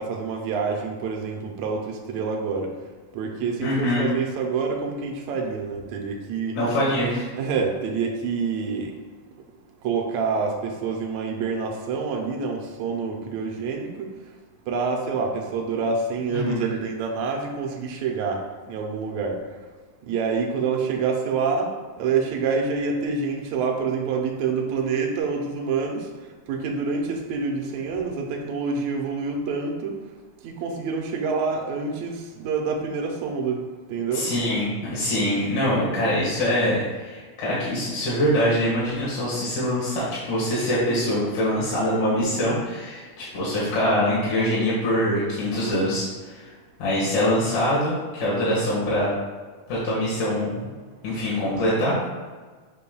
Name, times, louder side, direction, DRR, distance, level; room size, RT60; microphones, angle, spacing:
voice 1, 0.0-2.7 3.1-6.6 7.3-8.9 9.8-14.1 14.7-18.4 18.7-19.4 20.1-21.7 22.0-26.1 26.5-30.0 30.4-33.6 33.9-34.3, right 5 dB, 75° right, 1 dB, 2.0 m, -27 dB
voice 2, 3.6-4.0 6.5-7.3 16.3-16.6 34.1-46.5 46.8-49.1 49.7-50.7 51.0-52.1, equal, 70° left, -8 dB, 3.0 m, -24 dB
7.0 x 6.2 x 2.3 m, 1.4 s
omnidirectional pair, 3.6 m